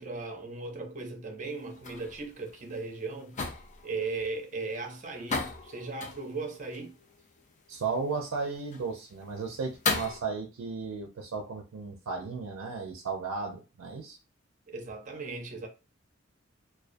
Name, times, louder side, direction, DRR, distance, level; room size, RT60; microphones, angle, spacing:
voice 1, 0.0-3.4 3.8-7.0 14.7-15.7, right 3 dB, 40° right, 0.6 m, -37 dB
sound 1, 1.4-10.2, left 4 dB, 35° left, 0.4 m, -38 dB
voice 2, 7.7-14.2, right 4 dB, 85° right, 0.4 m, -35 dB
2.2 x 2.2 x 2.5 m
head